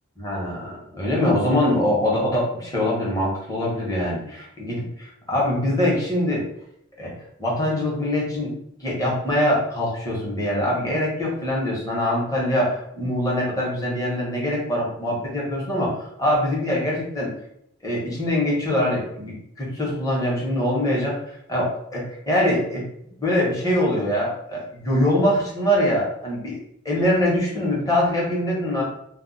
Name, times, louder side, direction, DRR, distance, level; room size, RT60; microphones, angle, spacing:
voice 1, 0.2-6.4 7.0-7.1 7.4-8.5 8.8-17.3 17.8-21.2 21.5-22.8 23.2-26.6 26.8-28.8, left 1 dB, 20° left, -4 dB, 0.9 m, -23 dB
2.3 x 2.2 x 3.9 m, 0.73 s
head